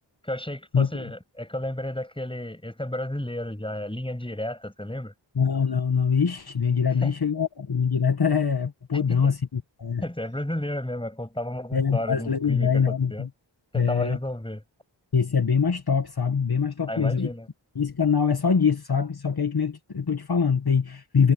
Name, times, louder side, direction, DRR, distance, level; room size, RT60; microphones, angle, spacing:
voice 1, 0.2-5.1 7.0-7.2 9.1-9.3 10.0-13.3 13.7-14.6 16.9-17.5, left 1 dB, 10° left, 6.5 m, -32 dB
voice 2, 0.7-1.1 5.3-10.0 11.7-13.3 13.7-14.2 15.1-17.3 17.7-21.3, left 6 dB, 50° left, 1.6 m, -23 dB
wide cardioid pair, 60°, 48 cm